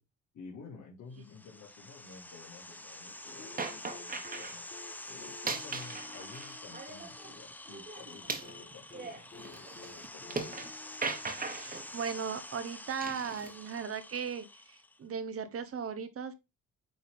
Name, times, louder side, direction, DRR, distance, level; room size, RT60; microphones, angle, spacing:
voice 1, 0.3-4.7 5.1-10.8, left 5 dB, 65° left, 2.0 m, -52 dB
sound 1, 1.2-15.0, left 1 dB, 5° left, 0.5 m, -47 dB
sound 2, 3.4-7.5 8.4-12.0 13.4-13.5, left 4 dB, 40° left, 2.0 m, -53 dB
sound 3, 3.6-4.6 5.3-7.3 7.7-10.7 11.0-11.9 13.0-13.5, right 4 dB, 30° right, 1.3 m, -39 dB
voice 2, 11.4-16.3, right 6 dB, 50° right, 0.9 m, -37 dB
8.8 x 3.4 x 3.5 m
cardioid pair, 90°, 30 cm